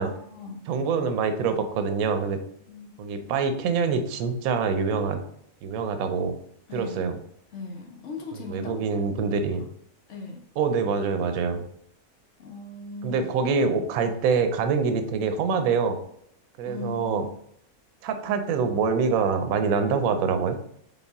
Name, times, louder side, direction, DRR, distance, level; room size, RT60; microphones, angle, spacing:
voice 1, 0.0-0.6 2.7-3.0 6.7-7.1 7.5-9.0 9.5-9.6 10.1-10.4 12.4-13.3 16.6-17.3, left 3 dB, 60° left, 2 dB, 0.9 m, -39 dB
voice 2, 0.7-2.4 3.0-5.2 5.6-6.3 6.7-7.1 8.3-9.7 10.6-11.6 13.0-16.0 16.6-17.3 18.0-20.6, right 5 dB, 75° right, 8 dB, 1.0 m, -25 dB
4.2 x 3.6 x 3.4 m, 0.69 s
omnidirectional pair, 1.6 m